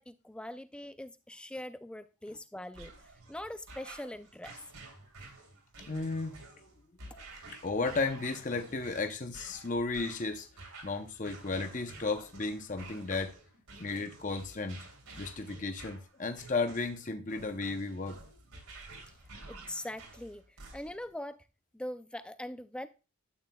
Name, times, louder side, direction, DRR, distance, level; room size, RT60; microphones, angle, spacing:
voice 1, 0.0-4.6 19.5-20.4 20.7-21.5 21.7-22.9, left 1 dB, 5° left, 11 dB, 0.3 m, -42 dB
sound 1, 2.7-21.1, right 2 dB, 85° right, 3.2 m, -51 dB
voice 2, 5.9-6.4 7.1-7.3 7.6-10.5 10.8-13.3 13.8-14.9 15.2-18.2, left 3 dB, 35° left, 6 dB, 0.7 m, -34 dB
12.5 x 8.8 x 2.3 m, 0.31 s
head